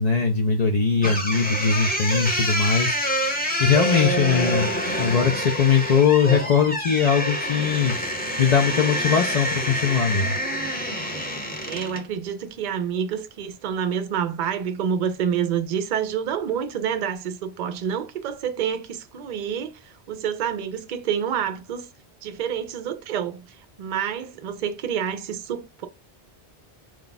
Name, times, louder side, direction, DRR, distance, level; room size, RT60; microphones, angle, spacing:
voice 1, 0.0-3.0 3.6-4.7 5.0-8.0 8.4-10.4, left 6 dB, 50° left, 0.6 m, -21 dB
sound 1, 1.0-12.1, equal, 10° left, 0.9 m, -26 dB
voice 2, 11.6-21.9 22.2-25.9, right 8 dB, 55° right, 0.6 m, -28 dB
4.7 x 2.3 x 4.0 m
omnidirectional pair, 1.0 m